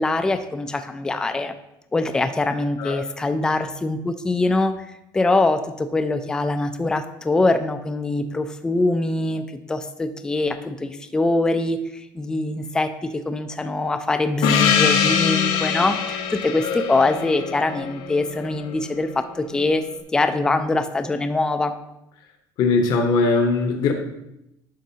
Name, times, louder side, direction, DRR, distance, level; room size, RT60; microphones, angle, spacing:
voice 1, 0.0-1.5 1.9-4.9 5.1-9.4 9.7-19.8 20.1-21.7, left 2 dB, 10° left, 8 dB, 0.3 m, -23 dB
Gong, 14.4-18.8, left 8 dB, 85° left, 0.8 m, -23 dB
voice 2, 22.6-23.9, left 3 dB, 50° left, 4 dB, 0.9 m, -20 dB
10.0 x 6.4 x 2.8 m, 0.84 s
cardioid pair, 170°, 9 cm